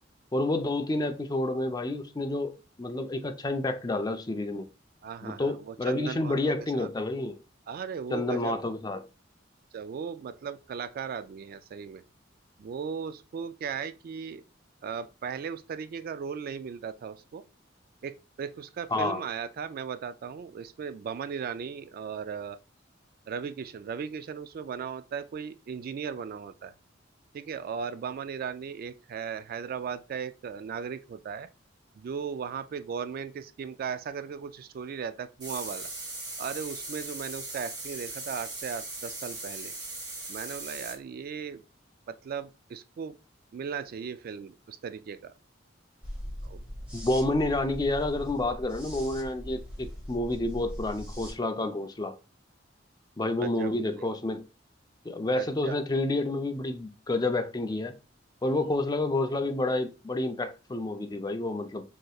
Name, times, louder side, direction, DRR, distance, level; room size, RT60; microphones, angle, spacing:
voice 1, 0.3-2.5 2.8-4.7 5.2-7.3 8.1-9.0 18.9-19.2 46.9-52.1 53.2-54.4 55.0-57.9 58.4-61.8, left 2 dB, 20° left, 0.5 m, -29 dB
voice 2, 5.0-6.9 7.7-8.6 9.7-12.0 12.6-14.4 14.8-17.4 18.0-22.6 23.3-26.7 27.3-31.5 32.0-35.9 36.4-39.7 40.3-41.6 42.1-43.2 43.5-45.3 46.4-46.6 53.4-54.1 55.3-55.8 58.6-58.7, right 6 dB, 50° right, 0.3 m, -37 dB
sound 1, 35.4-41.0, right 2 dB, 20° right, 1.7 m, -39 dB
sound 2, 46.0-51.3, equal, 5° right, 1.9 m, -40 dB
6.3 x 2.9 x 2.3 m
head